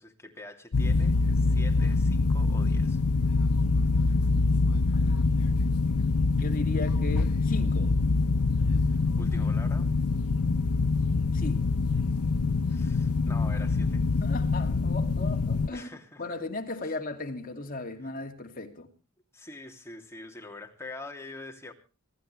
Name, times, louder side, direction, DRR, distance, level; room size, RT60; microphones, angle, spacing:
voice 1, 0.0-3.0 8.6-9.9 12.7-14.2 15.7-16.2 16.8-17.0 19.3-21.7, left 2 dB, 10° left, 2.7 m, -45 dB
sound 1, 0.7-15.7, left 3 dB, 85° left, 0.7 m, -25 dB
voice 2, 6.4-7.9 11.3-11.7 14.0-15.9 16.2-18.9, left 2 dB, 40° left, 2.6 m, -36 dB
25.5 x 13.0 x 3.3 m
head